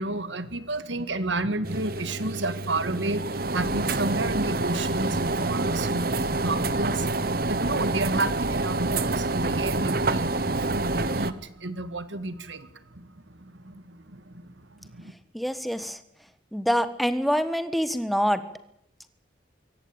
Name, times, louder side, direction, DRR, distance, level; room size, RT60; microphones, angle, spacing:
voice 1, 0.0-13.1 13.4-14.5 14.8-15.1, right 2 dB, 80° right, 13 dB, 1.9 m, -31 dB
sound 1, 1.6-11.3, right 2 dB, 55° right, 1.1 m, -27 dB
voice 2, 15.3-16.0 16.5-18.4, equal, ahead, 11 dB, 1.4 m, -25 dB
24.0 x 17.5 x 8.9 m, 0.73 s
head